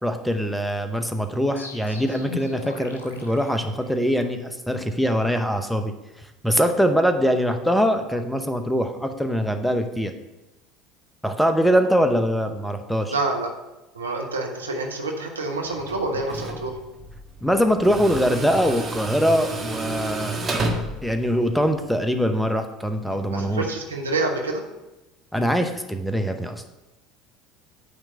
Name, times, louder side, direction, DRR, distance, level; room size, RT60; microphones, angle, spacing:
voice 1, 0.0-5.9 6.4-10.1 11.2-13.1 17.4-20.4 21.0-23.6 25.3-26.6, equal, ahead, 7 dB, 0.8 m, -23 dB
sound 1, 1.6-4.3, left 4 dB, 80° left, 0.8 m, -39 dB
voice 2, 13.1-13.5 13.9-16.8 23.1-24.6, right 2 dB, 80° right, 2 dB, 0.9 m, -27 dB
Tools, 15.6-21.9, right 2 dB, 25° right, 1.4 m, -31 dB
9.0 x 3.3 x 6.3 m, 1.0 s
figure-of-eight pair, 65°, 0 cm